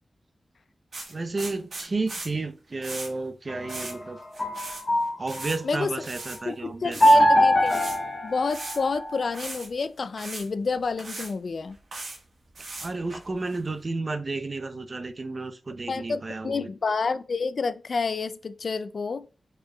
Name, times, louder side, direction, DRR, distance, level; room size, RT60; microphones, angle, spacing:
sound 1, 0.9-2.3 2.8-3.1 3.7-3.9 4.2-4.8 5.1-5.6 6.0-6.4 6.9-7.2 7.6-8.0 8.5-8.9 9.3-9.7 10.2-10.5 11.0-11.3 11.7-12.2 12.5-13.6, right 2 dB, 70° right, 1.4 m, -38 dB
voice 1, 1.1-4.2 5.2-7.3 12.8-16.7, right 3 dB, 45° right, 0.6 m, -32 dB
sound 2, 3.5-5.7 7.0-9.3, equal, 40° left, 0.8 m, -22 dB
voice 2, 6.5-7.7 8.2-11.8 15.9-19.3, left 4 dB, 70° left, 0.3 m, -29 dB
4.6 x 4.4 x 2.3 m
cardioid pair, 60°, 0 cm